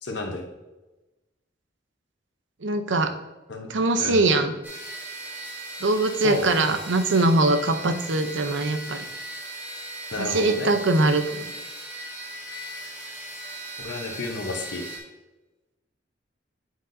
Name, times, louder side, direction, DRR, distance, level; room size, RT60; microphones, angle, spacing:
voice 1, 0.0-0.5 3.5-3.7 4.0-4.2 6.2-6.5 10.1-10.7 13.8-14.8, left 2 dB, 65° left, 2 dB, 0.9 m, -31 dB
voice 2, 2.6-3.1 3.7-4.5 5.8-9.1 10.2-11.4, right 2 dB, 80° right, 8 dB, 0.7 m, -22 dB
sound 1, 4.6-15.0, right 1 dB, 10° right, 2.5 m, -38 dB
8.1 x 7.6 x 2.7 m, 1.1 s
head